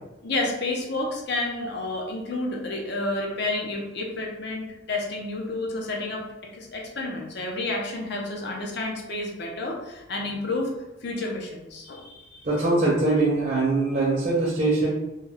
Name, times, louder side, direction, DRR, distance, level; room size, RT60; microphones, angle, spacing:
voice 1, 0.2-6.2 6.5-10.7 11.0-12.5, left 2 dB, 60° left, -1 dB, 0.6 m, -30 dB
voice 2, 12.4-14.9, right 2 dB, 45° right, -5 dB, 0.6 m, -22 dB
2.2 x 2.2 x 3.3 m, 0.99 s
head